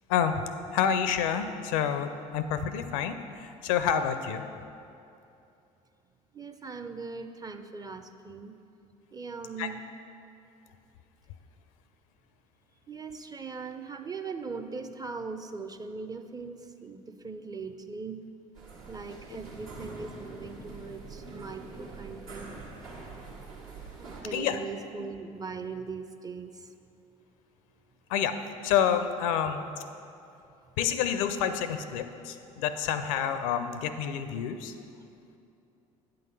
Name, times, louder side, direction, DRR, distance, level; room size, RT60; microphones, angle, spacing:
voice 1, 0.1-0.4 0.7-4.5 9.6-9.7 24.3-24.6 28.1-28.4 28.6-29.6 30.8-34.7, left 8 dB, 65° left, 10 dB, 0.5 m, -28 dB
voice 2, 6.3-8.6 9.1-9.8 12.9-18.2 18.9-22.6 24.0-26.7 32.5-32.6, right 4 dB, 20° right, 8 dB, 0.5 m, -40 dB
sound 1, 18.5-24.2, right 3 dB, 75° right, 1.3 m, -44 dB
9.0 x 3.9 x 6.8 m, 2.7 s
figure-of-eight pair, 55°, 18 cm